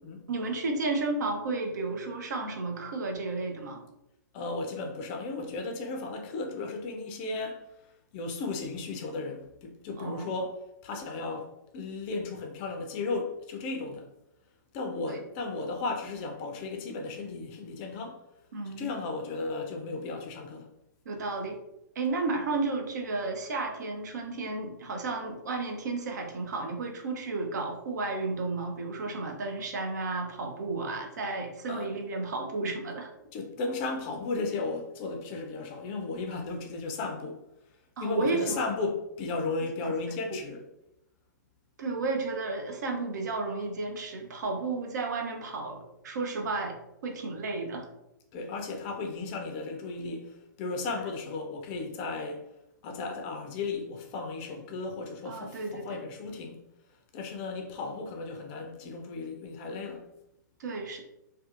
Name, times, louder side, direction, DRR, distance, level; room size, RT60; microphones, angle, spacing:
voice 1, 0.3-3.9 10.0-10.3 15.1-15.2 18.5-18.9 21.1-21.6 22.0-33.1 38.0-38.6 39.8-39.9 40.3-40.4 41.8-46.8 47.0-47.9 55.3-56.0 60.6-61.0, right 3 dB, 60° right, 0.6 m, -32 dB
voice 2, 4.3-7.6 8.1-10.5 10.8-14.1 14.7-18.2 18.7-20.7 31.7-31.9 33.3-37.4 38.0-40.6 48.3-52.4 52.8-56.6 57.1-60.1, left 3 dB, 35° left, 0.4 m, -35 dB
2.5 x 2.3 x 2.4 m
figure-of-eight pair, 115°, 10 cm